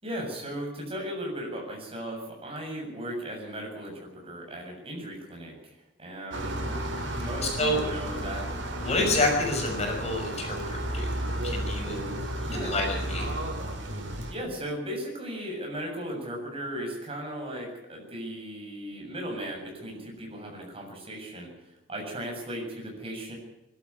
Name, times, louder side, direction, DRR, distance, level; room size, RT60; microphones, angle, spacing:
voice 1, 0.0-5.7 6.0-6.8 7.1-8.5 8.8-9.1 12.4-12.8 14.3-21.5 21.9-23.4, equal, 30° right, 0 dB, 7.5 m, -36 dB
sound 1, 6.3-14.3, right 1 dB, 85° right, 4.4 m, -33 dB
voice 2, 7.4-7.8 8.8-12.2 12.5-13.4, left 2 dB, 35° left, 1 dB, 6.0 m, -28 dB
21.5 x 12.5 x 9.8 m, 0.91 s
head